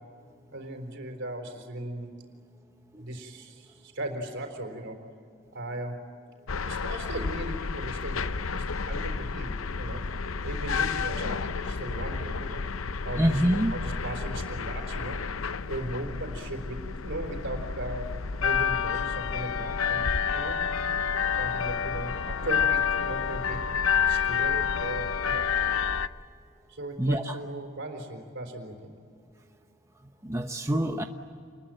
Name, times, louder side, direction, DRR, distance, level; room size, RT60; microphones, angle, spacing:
voice 1, 0.5-2.1 3.0-5.0 5.5-6.1 6.6-10.0 10.4-12.6 13.0-20.7 21.3-23.6 24.1-25.5 26.7-28.9, right 1 dB, 65° right, 4 dB, 4.2 m, -38 dB
sound 1, 6.5-26.1, left 6 dB, 80° left, 0.8 m, -29 dB
voice 2, 13.2-13.7 27.0-27.4 30.2-31.0, right 1 dB, 15° right, 5 dB, 0.9 m, -25 dB
28.5 x 21.0 x 9.2 m, 2.3 s
head